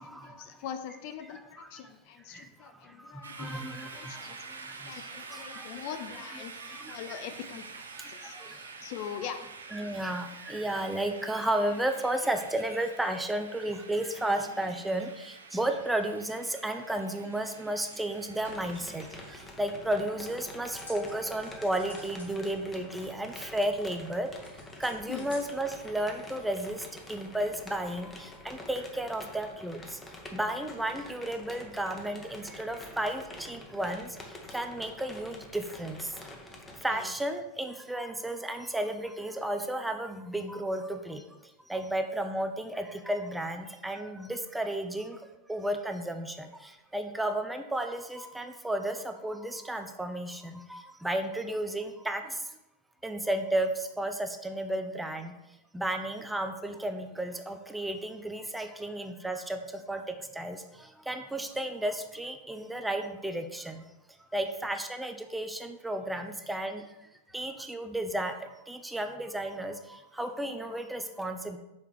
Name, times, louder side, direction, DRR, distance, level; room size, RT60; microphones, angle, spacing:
voice 1, 0.0-4.4 4.8-6.5 6.9-8.4 8.8-9.4 25.1-25.3 36.9-37.1, left 8 dB, 45° left, 8 dB, 0.5 m, -42 dB
voice 2, 3.2-4.1 5.3-5.7 6.8-7.2 8.2-8.5 9.7-19.0 19.6-24.3 24.8-26.8 27.1-28.1 28.4-29.8 30.3-34.1 34.5-36.0 36.8-41.2 41.7-45.2 45.5-46.5 46.9-52.2 53.0-53.7 54.0-55.3 55.7-59.6 59.9-60.0 60.4-60.6 61.1-63.8 64.3-66.8 67.3-71.6, right 1 dB, 5° right, 6 dB, 0.6 m, -33 dB
sound 1, 3.2-19.5, right 4 dB, 70° right, 0.6 m, -47 dB
sound 2, 17.1-25.7, left 1 dB, 75° left, 2.3 m, -54 dB
sound 3, 18.4-36.9, left 1 dB, 15° left, 1.0 m, -47 dB
5.7 x 4.5 x 4.6 m, 0.91 s
figure-of-eight pair, 90°, 0 cm